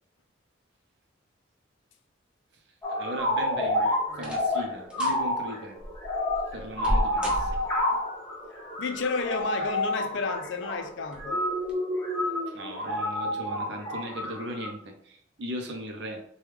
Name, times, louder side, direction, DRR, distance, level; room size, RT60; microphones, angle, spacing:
sound 1, 2.8-14.7, left 1 dB, 10° left, 0.9 m, -29 dB
voice 1, 2.9-5.8 6.5-7.6 12.5-16.2, equal, 60° right, 0.5 m, -38 dB
sound 2, 3.2-3.6 4.1-4.6 4.9-5.2 5.8-8.0 9.2-9.8 10.2-10.3 11.1-11.3 11.6-11.7, equal, 5° right, 0.5 m, -33 dB
voice 2, 8.8-11.4, left 4 dB, 65° left, 0.4 m, -31 dB
3.4 x 2.2 x 3.1 m
head